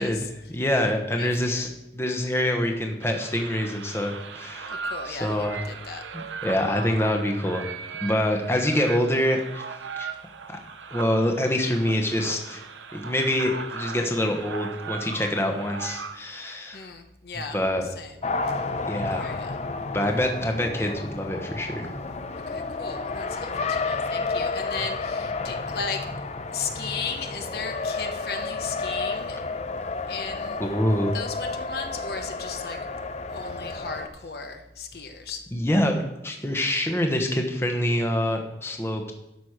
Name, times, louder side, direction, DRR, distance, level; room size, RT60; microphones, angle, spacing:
voice 1, 0.0-5.7 6.4-7.6 8.0-9.6 10.0-10.1 10.5-10.6 10.9-12.6 12.9-16.9 17.5-17.9 18.9-19.3 19.9-21.9 30.6-31.1 35.5-39.1, left 1 dB, 15° left, 3 dB, 0.9 m, -26 dB
voice 2, 1.2-1.6 4.7-6.0 16.7-18.2 18.5-18.6 19.1-19.5 22.5-26.1 26.5-29.4 30.1-30.7 31.1-32.8 33.3-35.4, left 5 dB, 55° left, 5 dB, 0.9 m, -36 dB
sound 1, 3.0-16.5, right 5 dB, 85° right, 0.7 m, -38 dB
Race car auto racing, 18.2-34.1, left 3 dB, 35° left, 0.5 m, -31 dB
12.5 x 6.0 x 4.9 m, 0.90 s
head